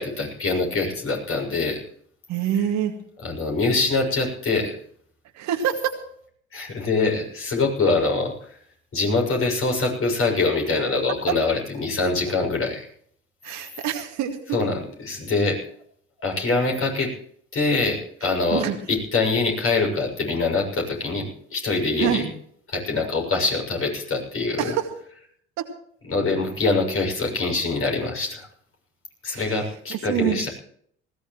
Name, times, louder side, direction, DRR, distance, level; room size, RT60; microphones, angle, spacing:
voice 1, 0.0-1.8 3.2-4.7 6.5-8.3 8.9-12.9 14.5-15.6 16.2-17.1 17.5-18.6 18.9-22.2 22.7-24.7 26.1-28.5 29.2-30.5, left 3 dB, 45° left, 1 dB, 7.0 m, -24 dB
voice 2, 2.3-2.9 5.3-5.9 11.3-11.4 13.4-14.6 18.2-18.8 22.0-22.3 24.6-24.9 25.6-25.7 29.3-30.4, right 10 dB, 65° right, 4 dB, 2.2 m, -26 dB
20.0 x 17.0 x 3.1 m, 0.62 s
hypercardioid pair, 55°, 31 cm